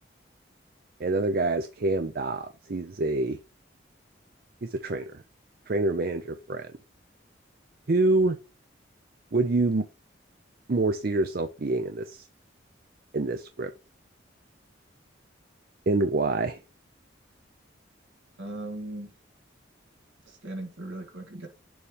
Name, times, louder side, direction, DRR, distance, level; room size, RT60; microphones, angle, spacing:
voice 1, 1.0-3.4 4.6-5.2 5.7-6.7 7.9-8.4 9.3-9.9 10.7-12.3 13.1-13.7 15.9-16.6, right 2 dB, 50° right, 0.5 m, -26 dB
voice 2, 18.4-19.1 20.4-21.5, right 1 dB, 75° right, 1.9 m, -37 dB
7.0 x 3.2 x 5.2 m
head